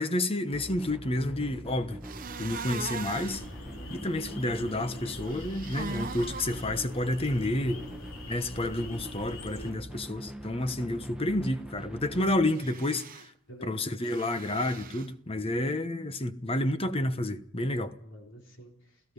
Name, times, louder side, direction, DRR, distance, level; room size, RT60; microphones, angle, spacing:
voice 1, 0.0-2.0 2.4-3.4 3.9-7.8 8.3-13.3 13.6-17.9, left 1 dB, 30° left, 1.1 m, -30 dB
sound 1, 0.5-12.5, right 1 dB, 5° right, 1.2 m, -43 dB
sound 2, 2.0-3.4 5.2-6.6 12.5-13.3 14.0-15.1, right 4 dB, 45° right, 1.0 m, -40 dB
sound 3, 3.3-9.7, left 1 dB, 85° left, 3.3 m, -45 dB
voice 2, 7.7-8.1 13.5-13.9 18.0-19.1, equal, 65° left, 4.0 m, -49 dB
28.5 x 16.5 x 5.5 m
head